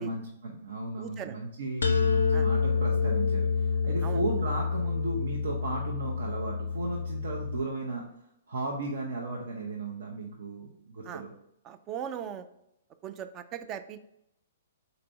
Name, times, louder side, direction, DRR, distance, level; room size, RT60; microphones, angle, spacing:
voice 1, 0.0-8.0 8.5-11.3, right 2 dB, 65° right, -1 dB, 0.6 m, -35 dB
voice 2, 1.0-1.4 2.3-2.5 4.0-4.2 11.1-11.2 11.6-12.5 13.0-14.0, right 9 dB, 30° right, 9 dB, 0.3 m, -38 dB
sound 1, 1.8-7.6, left 5 dB, 75° left, 0.4 m, -28 dB
3.9 x 2.5 x 4.3 m, 0.80 s
figure-of-eight pair, 120°, 0 cm